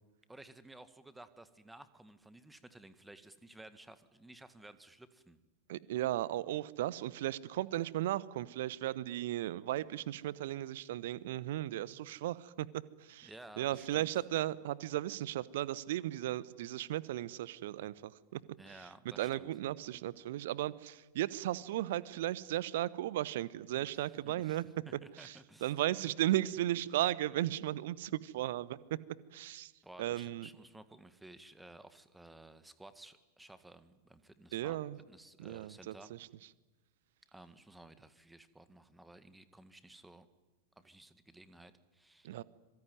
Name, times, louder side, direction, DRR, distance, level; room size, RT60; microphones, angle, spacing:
voice 1, 0.3-5.4 13.2-14.2 18.6-19.5 23.8-25.7 29.8-34.8 35.1-36.1 37.3-40.3 40.8-42.3, right 2 dB, 5° right, 13 dB, 1.7 m, -55 dB
voice 2, 5.7-12.7 13.1-13.3 13.6-18.4 19.2-24.6 25.2-25.3 25.6-28.8 29.3-29.7 30.0-30.5 34.5-35.0 35.4-35.9 42.2-42.4, right 14 dB, 55° right, 20 dB, 1.0 m, -35 dB
25.5 x 23.0 x 9.5 m, 1.2 s
figure-of-eight pair, 90°, 0 cm